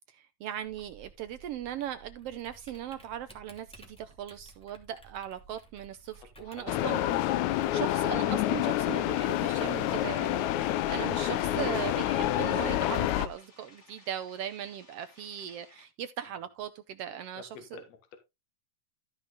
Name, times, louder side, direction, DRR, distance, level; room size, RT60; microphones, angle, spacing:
voice 1, 0.1-7.0 7.5-17.8, right 10 dB, 75° right, 1.4 m, -39 dB
Typing, 0.6-13.3, right 3 dB, ahead, 2.1 m, -56 dB
voice 2, 6.4-6.8 17.4-18.2, left 6 dB, 65° left, 2.6 m, -49 dB
sound 1, 6.7-13.3, left 13 dB, 80° left, 2.0 m, -28 dB
sound 2, 8.9-15.9, left 3 dB, 35° left, 3.4 m, -59 dB
13.5 x 5.5 x 3.9 m
omnidirectional pair, 3.3 m